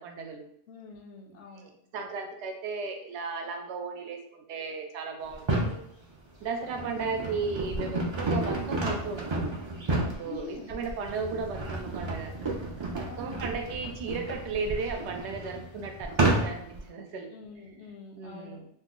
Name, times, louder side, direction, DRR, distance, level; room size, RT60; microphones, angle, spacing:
voice 1, 0.0-0.5 1.6-5.8 6.4-9.5 10.0-12.3 12.9-17.3 18.1-18.6, right 4 dB, 75° right, 3 dB, 0.8 m, -35 dB
voice 2, 0.7-1.7 6.7-7.2 10.2-10.8 13.0-13.6 17.3-18.7, left 3 dB, 80° left, 3 dB, 0.9 m, -46 dB
sound 1, 5.3-5.8 6.4-16.8, right 2 dB, 45° right, 0.3 m, -31 dB
2.8 x 2.0 x 3.6 m, 0.70 s
omnidirectional pair, 1.2 m